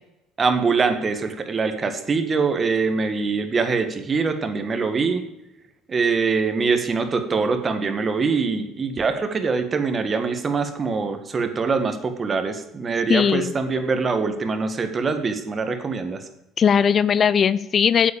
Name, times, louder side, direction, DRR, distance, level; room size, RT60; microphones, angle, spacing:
voice 1, 0.4-5.2 5.9-16.2, right 4 dB, 35° right, 7 dB, 1.9 m, -23 dB
voice 2, 13.1-13.5 16.6-18.1, left 7 dB, 45° left, 17 dB, 0.5 m, -18 dB
8.4 x 8.2 x 8.7 m, 0.93 s
hypercardioid pair, 65°, 0 cm